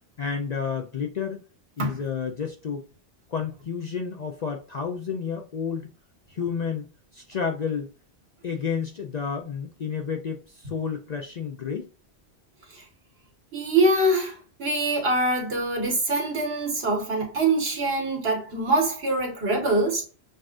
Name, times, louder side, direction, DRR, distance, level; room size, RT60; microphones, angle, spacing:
voice 1, 0.2-1.4 1.8-2.8 3.3-5.9 6.3-6.9 7.1-7.9 8.4-11.9, left 6 dB, 50° left, 0.5 m, -30 dB
voice 2, 13.5-20.0, right 2 dB, 65° right, 1.8 m, -24 dB
6.5 x 2.5 x 2.5 m
omnidirectional pair, 1.1 m